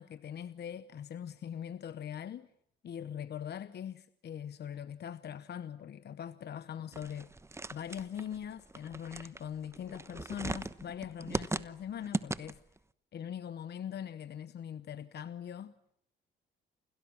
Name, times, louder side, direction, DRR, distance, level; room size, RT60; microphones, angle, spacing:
voice 1, 0.0-2.5 2.8-7.3 7.7-12.6 13.1-15.7, left 9 dB, 55° left, 1.0 m, -42 dB
sound 1, 6.9-12.8, right 2 dB, 15° right, 1.0 m, -39 dB
29.5 x 28.5 x 6.2 m
cardioid pair, 90°, 20 cm